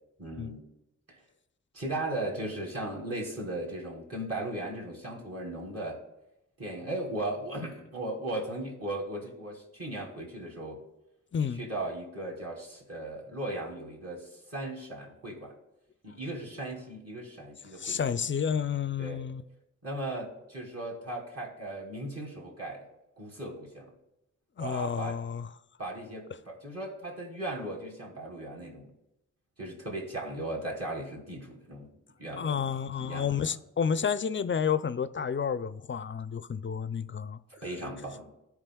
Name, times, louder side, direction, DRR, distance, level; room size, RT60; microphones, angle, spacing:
voice 1, 0.2-0.6 1.1-1.2 1.7-6.0 6.6-10.8 11.6-15.5 16.0-18.1 19.0-19.2 19.8-22.9 23.2-23.9 24.6-25.2 25.8-28.9 29.6-31.9 32.2-33.5 37.6-38.3, right 1 dB, 50° right, 2.5 m, -37 dB
voice 2, 11.3-11.6 17.8-19.4 24.6-25.5 32.4-37.4, left 7 dB, 40° left, 0.4 m, -30 dB
14.5 x 4.9 x 2.3 m
cardioid pair, 50°, 32 cm